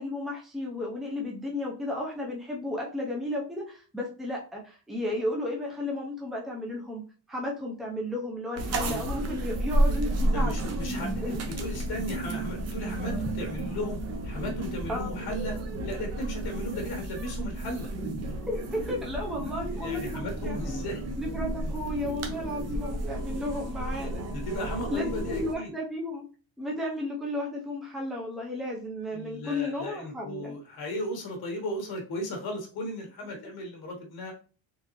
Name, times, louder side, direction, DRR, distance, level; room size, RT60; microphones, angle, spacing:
voice 1, 0.0-7.0 7.3-10.7 11.2-11.4 14.9-15.1 18.5-20.9 21.2-24.2 24.9-26.2 26.6-30.5 33.3-33.5, left 1 dB, ahead, -2 dB, 0.6 m, -33 dB
sound 1, 8.6-25.5, right 1 dB, 40° right, 0.7 m, -32 dB
voice 2, 10.3-14.0 14.2-17.9 19.7-21.0 24.3-25.7 29.1-34.3, left 1 dB, 60° left, 2 dB, 1.2 m, -36 dB
3.8 x 3.3 x 3.0 m, 0.38 s
cardioid pair, 175°, 41 cm